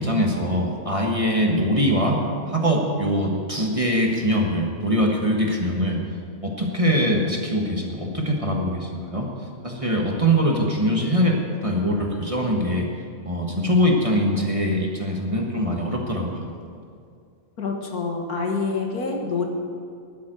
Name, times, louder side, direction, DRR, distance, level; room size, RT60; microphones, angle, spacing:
voice 1, 0.0-6.0 6.4-9.3 9.6-12.9 13.2-16.5, equal, 25° right, 0 dB, 1.4 m, -22 dB
voice 2, 17.6-19.5, left 4 dB, 80° left, 1 dB, 2.1 m, -26 dB
12.5 x 7.5 x 9.1 m, 2.3 s
omnidirectional pair, 1.6 m